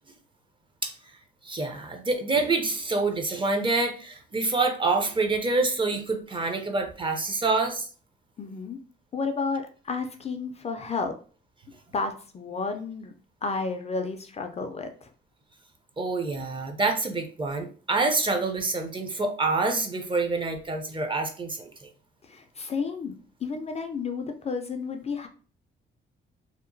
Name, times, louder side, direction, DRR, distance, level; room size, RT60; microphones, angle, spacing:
voice 1, 1.4-7.9 16.0-21.9, right 3 dB, 25° right, 5 dB, 0.5 m, -27 dB
voice 2, 8.4-8.8 9.1-11.1 11.9-13.1 13.4-15.1 22.2-25.3, left 4 dB, 35° left, 6 dB, 0.3 m, -32 dB
2.8 x 2.1 x 2.5 m, 0.39 s
cardioid pair, 90°, 20 cm